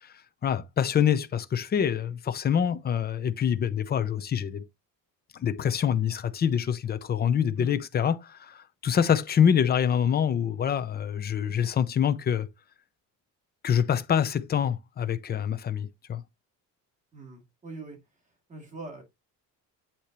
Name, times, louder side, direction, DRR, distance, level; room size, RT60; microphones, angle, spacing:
voice 1, 0.4-4.6 5.4-12.5 13.6-16.2, left 8 dB, 30° left, 0.6 m, -25 dB
voice 2, 17.1-18.0 18.5-19.0, right 2 dB, 20° right, 2.6 m, -42 dB
8.3 x 4.3 x 3.0 m
cardioid pair, 160°, 34 cm